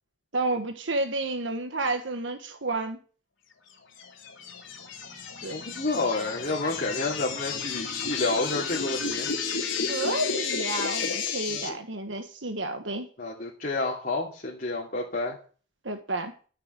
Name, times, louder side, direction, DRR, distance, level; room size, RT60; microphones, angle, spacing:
voice 1, 0.3-3.0 5.4-5.6 9.9-13.1 15.8-16.3, right 2 dB, 70° right, 6 dB, 1.5 m, -30 dB
sound 1, 4.0-11.7, left 5 dB, 75° left, 3.1 m, -32 dB
voice 2, 5.5-9.3 11.5-11.6 13.2-15.4, left 2 dB, 45° left, -3 dB, 2.7 m, -30 dB
13.5 x 6.8 x 6.8 m, 0.40 s
head